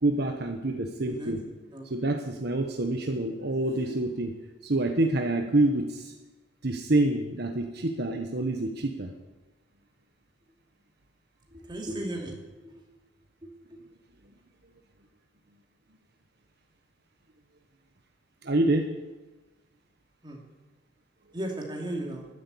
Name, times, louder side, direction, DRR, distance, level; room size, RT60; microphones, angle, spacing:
voice 1, 0.0-1.4 1.9-4.3 4.6-6.1 6.6-9.1 18.4-18.9, right 2 dB, 55° right, 4 dB, 1.2 m, -27 dB
voice 2, 11.5-12.7 20.2-20.4 21.3-22.3, right 1 dB, 25° right, 0 dB, 2.8 m, -35 dB
12.5 x 10.5 x 8.4 m, 1.1 s
head